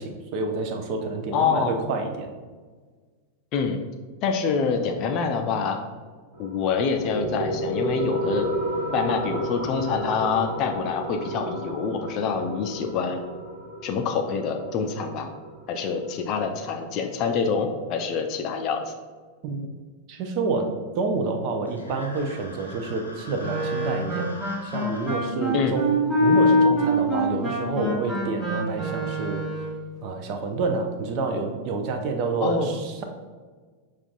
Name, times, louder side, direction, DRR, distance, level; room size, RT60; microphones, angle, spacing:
voice 1, 0.0-2.3 19.4-19.8 20.1-20.7 21.0-24.3 24.6-29.5 30.0-33.0, right 3 dB, 40° right, 5 dB, 0.5 m, -28 dB
voice 2, 1.3-1.8 3.5-3.8 4.2-5.8 6.4-8.5 8.9-13.2 13.8-15.3 15.7-18.9 25.5-25.8 32.4-32.8, left 5 dB, 40° left, 4 dB, 0.4 m, -26 dB
sound 1, 6.3-17.3, right 1 dB, 65° right, 1.2 m, -32 dB
sound 2, 21.7-25.2, left 2 dB, 80° left, 0.7 m, -42 dB
Wind instrument woodwind instrument, 23.4-29.8, equal, 15° right, 1.1 m, -24 dB
5.8 x 2.4 x 2.5 m, 1.5 s
figure-of-eight pair, 90°, 0 cm